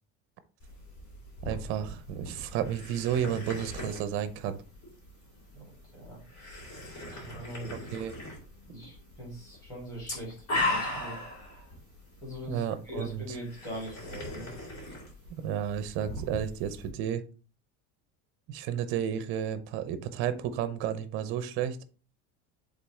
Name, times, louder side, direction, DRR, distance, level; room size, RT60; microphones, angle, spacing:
sound 1, 0.6-16.9, left 2 dB, 45° left, 3.6 m, -39 dB
voice 1, 1.4-4.6 7.9-8.2 12.5-13.4 15.3-17.2 18.5-21.8, right 9 dB, 35° right, 12 dB, 0.6 m, -32 dB
voice 2, 7.1-7.9 8.6-11.2 12.2-14.5, equal, 10° left, -5 dB, 3.7 m, -41 dB
7.3 x 3.9 x 3.6 m, 0.36 s
cardioid pair, 180°, 34 cm